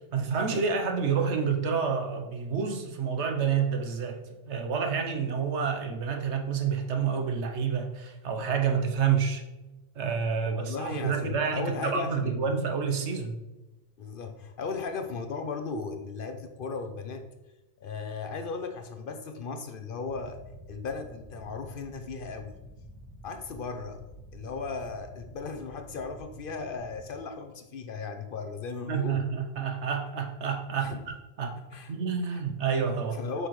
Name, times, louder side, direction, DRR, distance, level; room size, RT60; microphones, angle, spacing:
voice 1, 0.1-4.2 4.5-9.4 10.0-13.4 28.9-31.0 31.4-31.6 31.9-33.2, right 6 dB, 75° right, 4 dB, 1.1 m, -28 dB
voice 2, 10.5-12.5 14.0-17.3 17.8-20.4 20.7-22.5 23.2-24.1 24.3-29.3 30.8-31.0 31.7-31.9 32.3-32.4 33.2-33.5, left 4 dB, 60° left, 7 dB, 0.7 m, -36 dB
sound 1, 20.0-27.1, equal, 5° left, 1.2 m, -49 dB
7.8 x 5.2 x 3.1 m, 1.1 s
omnidirectional pair, 1.2 m